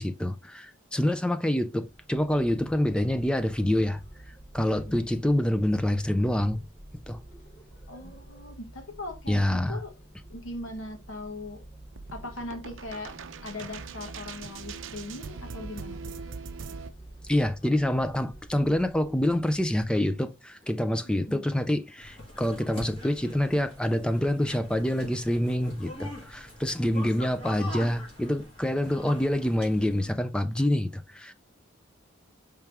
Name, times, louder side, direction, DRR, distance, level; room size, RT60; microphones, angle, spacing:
voice 1, 0.0-4.0 4.5-6.6 7.1-7.2 9.3-9.8 17.2-31.3, left 1 dB, 5° left, 0.4 m, -26 dB
sound 1, 1.8-20.0, right 1 dB, 50° left, 1.9 m, -49 dB
voice 2, 4.6-5.1 7.9-9.9 10.3-11.6 12.1-13.2 13.4-16.1 21.1-21.4, left 2 dB, 85° left, 1.2 m, -40 dB
sound 2, 11.9-16.9, right 5 dB, 75° right, 0.5 m, -41 dB
sound 3, 22.0-30.1, left 1 dB, 25° left, 1.9 m, -43 dB
4.6 x 3.5 x 3.3 m
head